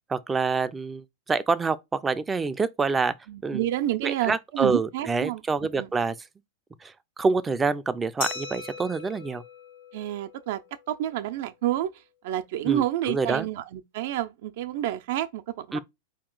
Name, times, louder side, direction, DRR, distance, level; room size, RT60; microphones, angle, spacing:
voice 1, 0.1-3.1 3.4-3.6 4.0-6.1 6.8-9.4 12.6-13.5 15.7-15.8, right 4 dB, 15° right, 0.5 m, -27 dB
voice 2, 3.3-5.4 5.8-5.9 9.9-10.6 10.9-11.9 12.2-15.8, right 13 dB, 65° right, 0.6 m, -29 dB
Glass, 8.2-10.7, left 5 dB, 65° left, 1.7 m, -38 dB
4.3 x 2.8 x 3.9 m
hypercardioid pair, 110°, 0 cm